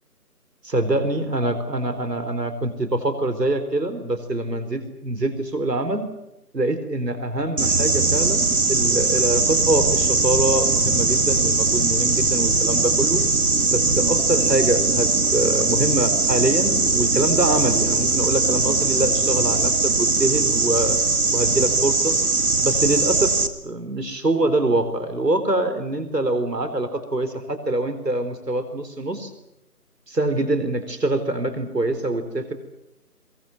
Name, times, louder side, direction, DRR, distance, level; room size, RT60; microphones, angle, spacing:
voice 1, 0.6-6.0 6.5-13.2 13.7-21.0 21.3-22.2 22.6-23.3 23.6-29.3 30.1-32.5, right 2 dB, 85° right, 9 dB, 4.2 m, -24 dB
sound 1, 7.6-23.5, right 3 dB, 65° right, 2.1 m, -20 dB
23.0 x 20.5 x 9.2 m, 0.89 s
figure-of-eight pair, 170°, 48 cm